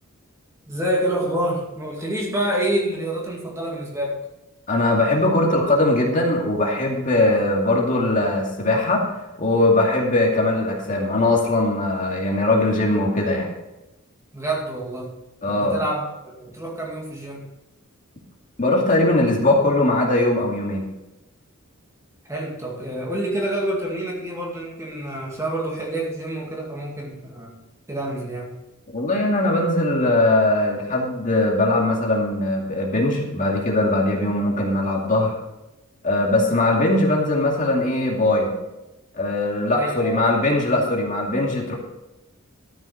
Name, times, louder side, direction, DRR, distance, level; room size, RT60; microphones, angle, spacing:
voice 1, 0.7-4.2 14.3-15.1 15.5-17.5 22.2-27.5 27.9-28.5 39.7-40.3, right 1 dB, 15° right, -2 dB, 2.2 m, -27 dB
voice 2, 4.7-9.0 9.4-13.5 15.4-15.8 18.6-20.8 28.9-35.3 36.0-38.5 39.1-41.7, left 2 dB, 35° left, -1 dB, 2.4 m, -20 dB
13.0 x 7.5 x 5.2 m, 0.97 s
head